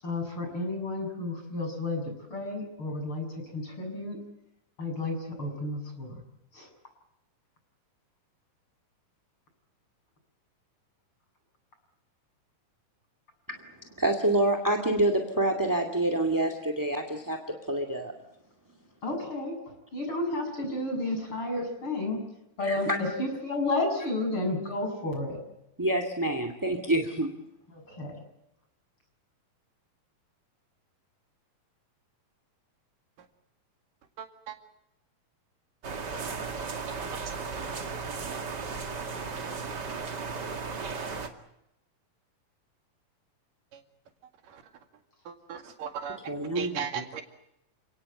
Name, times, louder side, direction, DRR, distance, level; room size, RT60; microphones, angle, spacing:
voice 1, 0.0-4.2 4.8-6.2 6.5-6.7 19.0-19.6 19.9-22.2 22.6-25.4 27.7-28.1, left 2 dB, 35° left, 4 dB, 7.8 m, -32 dB
voice 2, 13.9-17.4 17.7-18.1 22.7-23.0 25.8-27.3 46.3-47.0, right 1 dB, 10° right, 6 dB, 1.5 m, -27 dB
voice 3, 34.2-34.6 45.3-46.2 46.6-47.2, right 7 dB, 70° right, 6 dB, 3.7 m, -36 dB
sound 1, 35.8-41.3, right 4 dB, 35° right, 2.2 m, -35 dB
29.5 x 18.5 x 7.9 m, 0.87 s
omnidirectional pair, 4.1 m